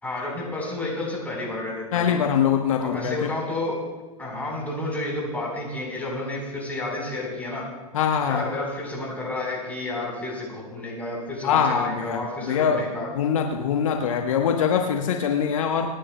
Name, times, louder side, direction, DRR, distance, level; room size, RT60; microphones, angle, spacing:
voice 1, 0.0-2.2 2.8-3.8 4.2-7.6 8.3-13.1, left 2 dB, 10° left, -3 dB, 4.3 m, -31 dB
voice 2, 1.9-3.3 7.9-8.4 11.4-12.9 13.1-15.9, left 7 dB, 60° left, 3 dB, 1.1 m, -23 dB
28.0 x 10.0 x 2.3 m, 1.2 s
figure-of-eight pair, 95°, 19 cm